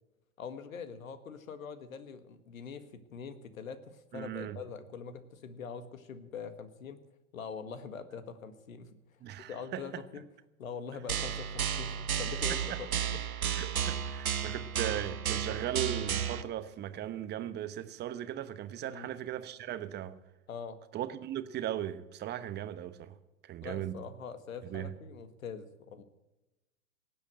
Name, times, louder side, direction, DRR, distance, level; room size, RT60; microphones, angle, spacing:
voice 1, 0.4-7.0 7.3-9.0 9.5-10.2 10.6-13.2 18.9-19.1 20.5-20.8 23.6-26.0, left 6 dB, 70° left, 1.8 m, -43 dB
voice 2, 4.1-4.6 9.2-10.0 12.5-12.8 13.4-20.2 20.9-23.2 23.4-24.0 24.6-24.9, right 11 dB, 25° right, 1.0 m, -38 dB
sound 1, 11.1-16.4, right 8 dB, 80° right, 1.1 m, -33 dB
18.0 x 8.3 x 7.7 m
hypercardioid pair, 105°, 42 cm